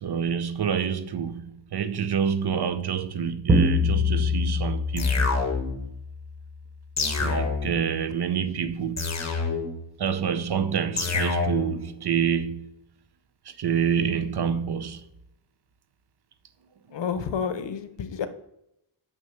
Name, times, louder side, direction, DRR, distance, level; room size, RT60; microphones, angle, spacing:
voice 1, 0.0-5.3 7.2-9.2 10.0-12.7 13.5-15.0, right 7 dB, 55° right, 0.7 m, -27 dB
sound 1, 3.5-6.2, left 2 dB, 15° right, 0.5 m, -24 dB
sound 2, 5.0-5.9 7.0-7.9 9.0-9.9 11.0-11.8, left 4 dB, 35° left, 1.3 m, -27 dB
voice 2, 16.9-18.3, left 6 dB, 65° left, 0.8 m, -30 dB
6.5 x 5.3 x 6.7 m
wide cardioid pair, 145°, 47 cm